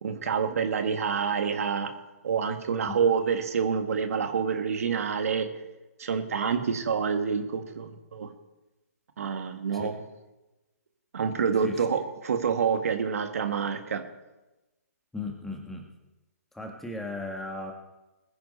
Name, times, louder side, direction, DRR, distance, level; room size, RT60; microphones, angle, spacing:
voice 1, 0.0-1.9 2.2-5.5 6.0-8.3 9.2-9.9 11.1-14.0, right 6 dB, 65° right, 6 dB, 1.9 m, -27 dB
voice 2, 15.1-15.9 16.5-17.7, left 2 dB, 5° left, 2 dB, 1.8 m, -36 dB
21.0 x 10.5 x 4.3 m, 1.0 s
hypercardioid pair, 135°, 9 cm